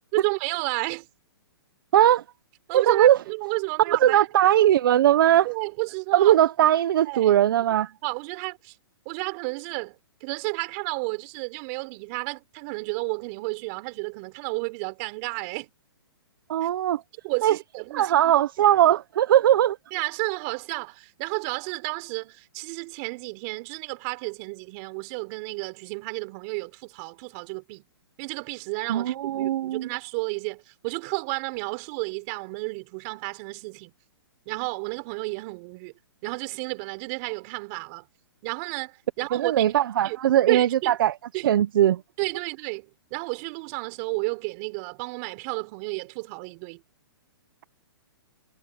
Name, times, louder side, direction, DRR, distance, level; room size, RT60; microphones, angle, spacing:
voice 1, 0.1-1.1 2.7-4.3 5.4-6.4 7.0-7.4 8.0-8.8 9.1-15.7 16.6-16.7 17.2-18.3 19.9-27.8 28.2-33.9 34.5-35.9 36.2-38.1 38.4-39.7 40.0-40.2 40.5-41.0 41.3-41.5 42.2-46.8, right 32 dB, 35° right, 5.5 m, -32 dB
voice 2, 1.9-2.2 2.7-3.2 3.9-5.5 6.1-7.9 16.5-17.0 17.4-17.6 17.9-19.8 28.9-29.9 39.3-41.1 41.4-42.0, right 12 dB, 55° right, 1.1 m, -20 dB
hypercardioid pair, 150°, 13 cm